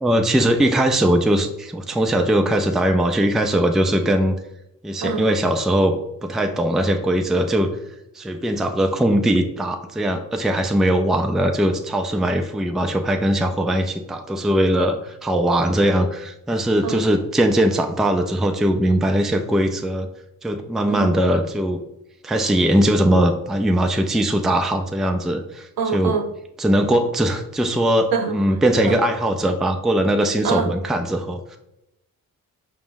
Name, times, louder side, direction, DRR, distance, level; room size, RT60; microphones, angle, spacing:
voice 1, 0.0-4.4 4.8-7.7 8.2-20.1 20.4-21.8 22.2-26.2 26.6-31.6, right 1 dB, ahead, 5 dB, 0.4 m, -20 dB
voice 2, 25.8-26.3 28.1-28.3 28.9-29.0 30.4-30.7, right 6 dB, 70° right, 5 dB, 0.7 m, -24 dB
4.6 x 2.1 x 3.8 m, 0.86 s
supercardioid pair, 60°, 37 cm